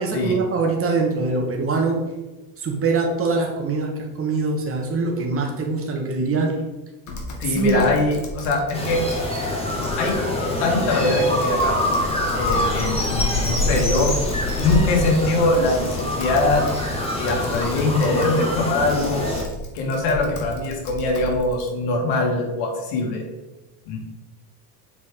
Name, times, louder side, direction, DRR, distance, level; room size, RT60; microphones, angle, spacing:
voice 1, 0.0-2.0 2.6-6.6 7.5-7.8, right 3 dB, 30° right, 1 dB, 1.7 m, -23 dB
Typing, 7.1-21.7, left 2 dB, 40° left, 1.7 m, -36 dB
voice 2, 7.4-9.0 10.0-10.2 10.6-11.8 12.3-14.1 14.6-16.6 17.2-19.3 19.7-23.2 23.9-24.0, left 2 dB, 75° left, 0 dB, 2.1 m, -22 dB
sound 1, 8.7-19.4, left 1 dB, 15° left, 1.9 m, -25 dB
7.4 x 4.6 x 3.7 m, 1.1 s
supercardioid pair, 105°, 45 cm